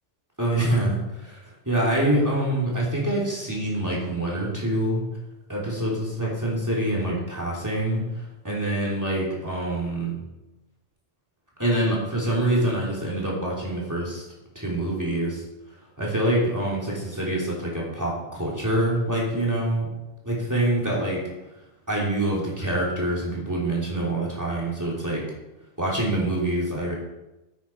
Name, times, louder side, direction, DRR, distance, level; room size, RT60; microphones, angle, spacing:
voice 1, 0.4-1.4 1.6-5.0 5.5-10.2 11.6-14.2 14.5-15.4 16.0-19.9 20.2-21.2 21.9-25.2 25.8-26.9, right 1 dB, 15° right, -5 dB, 3.3 m, -25 dB
9.9 x 9.1 x 4.6 m, 0.99 s
omnidirectional pair, 1.3 m